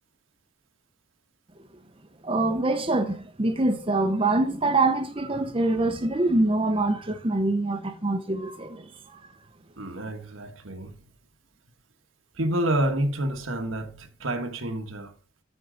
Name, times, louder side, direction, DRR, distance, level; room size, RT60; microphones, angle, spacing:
voice 1, 2.2-9.3, right 2 dB, 25° right, 0.7 m, -25 dB
voice 2, 9.8-11.0 12.3-15.1, right 1 dB, 75° right, 1.3 m, -28 dB
13.0 x 4.6 x 3.8 m
head